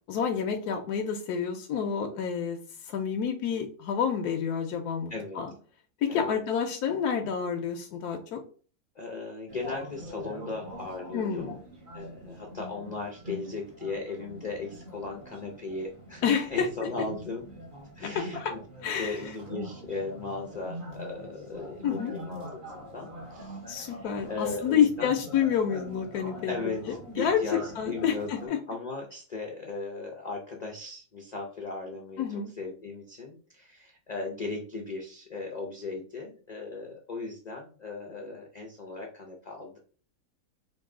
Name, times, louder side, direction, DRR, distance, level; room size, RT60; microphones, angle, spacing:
voice 1, 0.1-2.6 2.8-5.5 6.0-8.4 11.1-11.5 16.2-16.9 18.1-18.5 18.8-19.2 21.8-22.1 23.7-26.6 27.2-28.6 32.2-32.5, left 7 dB, 80° left, 3 dB, 1.2 m, -28 dB
voice 2, 5.1-5.4 6.1-6.4 8.9-11.5 11.9-16.2 16.5-17.4 17.9-18.6 18.9-22.4 22.7-25.1 26.5-26.8 27.1-39.8, left 3 dB, 40° left, 1 dB, 0.6 m, -37 dB
sound 1, 9.5-28.5, equal, 35° right, 1.1 m, -44 dB
5.3 x 2.6 x 3.7 m, 0.41 s
omnidirectional pair, 1.6 m